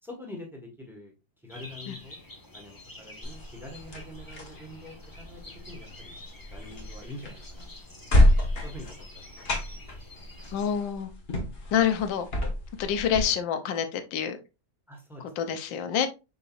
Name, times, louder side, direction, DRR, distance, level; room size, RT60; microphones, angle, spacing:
voice 1, 0.0-1.1 1.4-2.2 2.5-5.4 5.7-6.1 6.5-7.7 8.6-10.0 14.9-15.6, left 1 dB, ahead, 1.1 m, -45 dB
sound 1, 1.5-10.7, left 2 dB, 20° left, 0.5 m, -49 dB
sound 2, 3.2-13.2, left 1 dB, 40° left, 1.1 m, -29 dB
voice 2, 10.5-11.1 11.7-12.3 12.8-14.4 15.2-16.1, left 8 dB, 85° left, 1.5 m, -27 dB
5.5 x 3.9 x 2.4 m
omnidirectional pair, 2.0 m